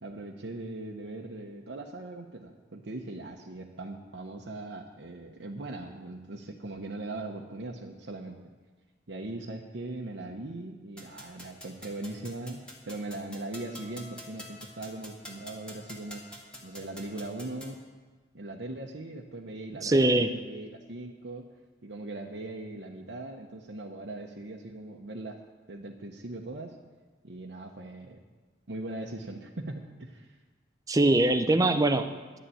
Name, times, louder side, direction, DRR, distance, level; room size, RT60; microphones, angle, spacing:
voice 1, 0.0-8.4 9.1-16.2 16.6-17.8 18.3-21.5 21.8-25.4 25.7-26.8 27.2-28.2 28.7-30.4, right 2 dB, 80° right, 1 dB, 1.0 m, -40 dB
sound 1, 11.0-17.8, left 1 dB, 5° left, 1.6 m, -48 dB
voice 2, 19.8-20.4 30.9-32.4, right 2 dB, 20° right, 9 dB, 0.5 m, -23 dB
11.5 x 7.1 x 9.1 m, 1.3 s
head